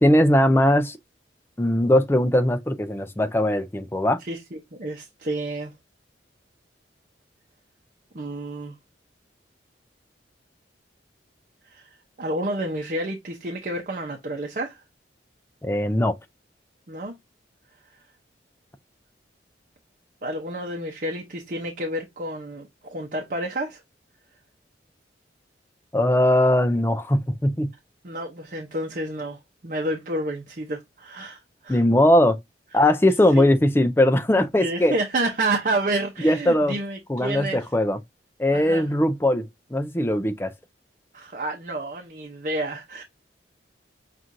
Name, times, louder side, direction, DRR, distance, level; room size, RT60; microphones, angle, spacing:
voice 1, 0.0-1.0 1.6-4.2 15.6-16.2 25.9-27.7 31.7-32.4 32.7-34.9 36.2-36.8 37.1-38.0 38.4-39.4 39.7-40.5, left 1 dB, 15° left, 0.4 m, -20 dB
voice 2, 4.2-5.7 8.1-8.8 11.7-11.9 12.2-14.8 16.9-17.1 20.2-23.8 28.0-31.8 32.7-32.8 33.3-33.5 34.6-37.7 38.5-38.9 41.1-43.0, right 1 dB, 45° right, 0.7 m, -30 dB
6.0 x 2.5 x 2.6 m
head